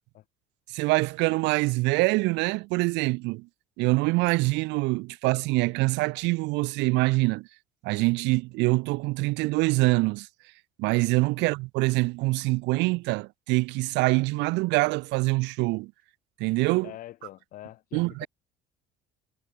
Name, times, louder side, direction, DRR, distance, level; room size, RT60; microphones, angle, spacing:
voice 1, 0.7-3.5 3.8-7.5 7.8-10.3 10.8-15.9 16.4-16.9 17.9-18.3, right 24 dB, 75° right, 1.2 m, -25 dB
voice 2, 16.8-18.3, left 14 dB, 50° left, 1.7 m, -44 dB
cardioid pair, 160°, 19 cm